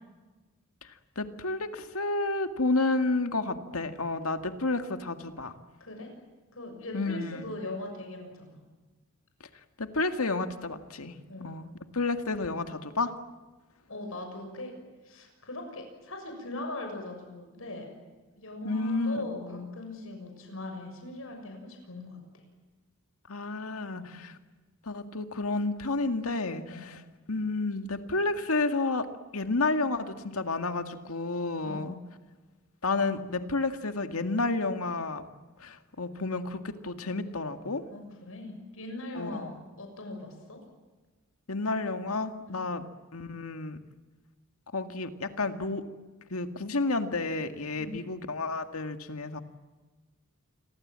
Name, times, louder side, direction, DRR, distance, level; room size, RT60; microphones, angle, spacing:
voice 1, 0.8-5.5 6.9-7.5 9.8-11.1 11.4-11.7 11.9-13.1 18.6-19.7 23.3-24.3 24.9-27.0 27.3-29.1 29.3-32.0 32.8-35.3 35.6-37.8 39.1-39.5 41.5-42.8 43.1-43.8 44.7-45.8 46.3-49.4, left 3 dB, 85° left, 8 dB, 2.0 m, -31 dB
voice 2, 5.8-6.1 6.5-8.6 11.3-11.6 13.9-14.7 15.0-17.9 18.4-19.4 19.7-22.2 23.9-24.1 26.7-26.9 31.6-31.9 37.9-40.6 42.5-42.6 47.8-48.0, left 2 dB, 70° left, 4 dB, 6.8 m, -40 dB
28.5 x 22.5 x 7.6 m, 1.3 s
head